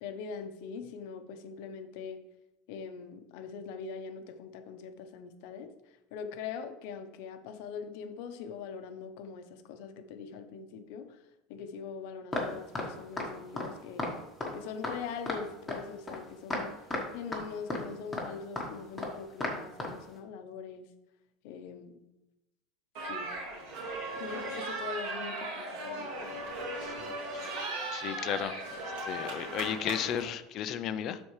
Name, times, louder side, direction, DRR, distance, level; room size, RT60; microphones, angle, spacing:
voice 1, 0.0-2.2 2.7-5.7 6.1-11.2 11.5-14.1 14.5-16.7 17.1-20.9 21.4-22.0 23.1-23.3 24.2-26.1, left 6 dB, 65° left, 0.8 m, -42 dB
sound 1, 12.3-12.5 12.7-12.9 13.2-13.3 13.6-13.7 14.0-14.1 14.4-14.5 14.8-14.9 15.3-15.4 15.7-15.8 16.1-16.2 16.5-16.6 16.9-17.0 17.3-17.4 17.7-17.8 18.1-18.2 18.6-18.7 19.0-19.1 19.4-19.5 19.8-19.9, left 2 dB, 5° left, 1.3 m, -33 dB
sound 2, 23.0-30.3, right 2 dB, 65° right, 2.8 m, -37 dB
voice 2, 27.9-28.6 29.0-31.2, left 9 dB, 35° left, 0.4 m, -34 dB
12.5 x 4.2 x 3.2 m
cardioid pair, 170°, 0 cm